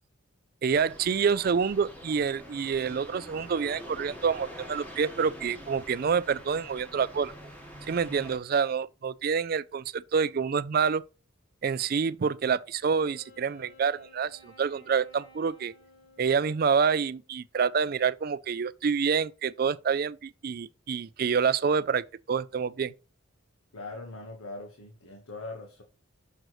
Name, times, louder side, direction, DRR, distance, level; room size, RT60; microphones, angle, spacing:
voice 1, 0.6-7.3 7.9-11.0 11.6-15.7 16.2-22.9, right 6 dB, 45° right, 0.3 m, -27 dB
sound 1, 0.7-8.4, equal, 5° left, 1.4 m, -45 dB
Wind instrument woodwind instrument, 12.8-17.3, left 2 dB, 65° left, 2.0 m, -56 dB
voice 2, 23.7-25.8, left 2 dB, 85° left, 1.2 m, -41 dB
6.5 x 6.2 x 3.1 m
head